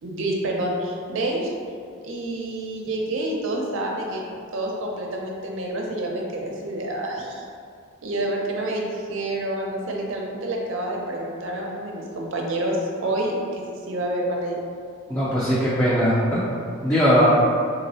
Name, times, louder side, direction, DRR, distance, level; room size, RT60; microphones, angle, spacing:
voice 1, 0.0-1.5 2.0-4.2 4.5-7.4 8.0-14.6, right 1 dB, 75° right, 0 dB, 0.5 m, -28 dB
voice 2, 15.1-16.2 16.8-17.3, equal, 15° left, -11 dB, 0.4 m, -19 dB
3.9 x 2.0 x 2.6 m, 2.3 s
head